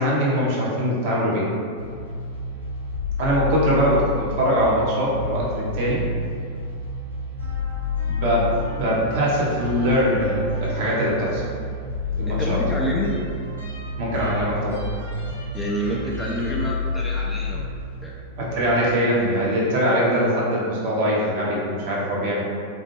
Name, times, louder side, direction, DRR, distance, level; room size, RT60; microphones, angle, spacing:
voice 1, 0.0-1.4 3.2-6.0 8.1-8.5 8.8-11.4 12.2-12.6 14.0-14.8 18.4-22.4, equal, 50° right, -5 dB, 0.6 m, -22 dB
sound 1, 1.8-19.1, left 2 dB, 90° left, 0.5 m, -29 dB
voice 2, 12.3-13.1 15.5-17.7 18.0-18.1, equal, 10° left, -4 dB, 0.3 m, -28 dB
2.3 x 2.1 x 3.0 m, 2.2 s
figure-of-eight pair, 90°, 0 cm